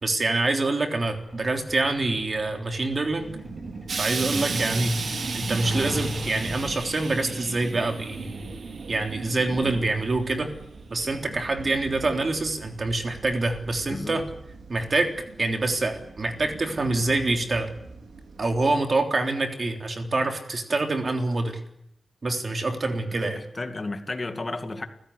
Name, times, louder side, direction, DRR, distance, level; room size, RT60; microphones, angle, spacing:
voice 1, 0.0-3.4 4.0-5.0 5.3-8.3 8.9-10.5 10.9-14.3 14.7-17.7 18.4-21.6 22.2-23.4, right 2 dB, 35° right, 5 dB, 3.5 m, -26 dB
Truck, 1.1-13.4 14.7-14.8 15.2-15.4 15.8-16.1 16.4-16.5 17.0-17.1, left 1 dB, 10° right, 4.9 m, -37 dB
sound 1, 3.2-18.8, right 4 dB, 85° right, 3.8 m, -40 dB
Explosion, 3.9-9.2 10.0-10.1, right 5 dB, 60° right, 1.5 m, -34 dB
voice 2, 13.9-14.2 23.3-24.9, left 2 dB, 30° left, 7 dB, 2.2 m, -32 dB
28.5 x 16.0 x 9.9 m, 0.76 s
wide cardioid pair, 175°, 0 cm